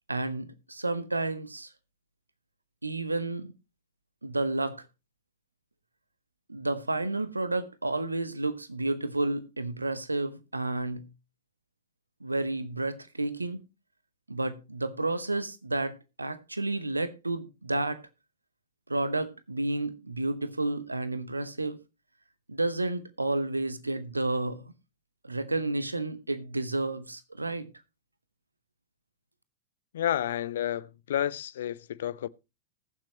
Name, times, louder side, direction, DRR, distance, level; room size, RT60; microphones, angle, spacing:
voice 1, 0.1-1.7 2.8-3.5 4.2-4.8 6.5-11.0 12.2-13.6 14.3-18.0 18.9-21.8 22.5-24.7 25.2-27.7, right 2 dB, 80° right, 0.9 m, -31 dB
voice 2, 29.9-32.3, left 11 dB, 60° left, 0.5 m, -30 dB
20.0 x 7.4 x 3.0 m
figure-of-eight pair, 90°, 0 cm